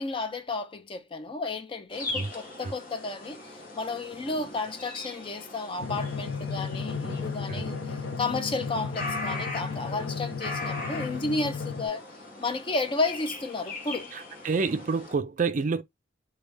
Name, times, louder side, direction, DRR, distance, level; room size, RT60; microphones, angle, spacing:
voice 1, 0.0-12.0 12.4-14.1, left 3 dB, 25° left, 0.4 m, -32 dB
sound 1, 1.9-15.1, left 2 dB, 50° left, 0.9 m, -40 dB
Drum, 5.8-11.9, left 5 dB, 80° left, 0.6 m, -34 dB
voice 2, 14.1-15.8, right 4 dB, 40° right, 0.4 m, -28 dB
3.2 x 2.3 x 3.2 m
head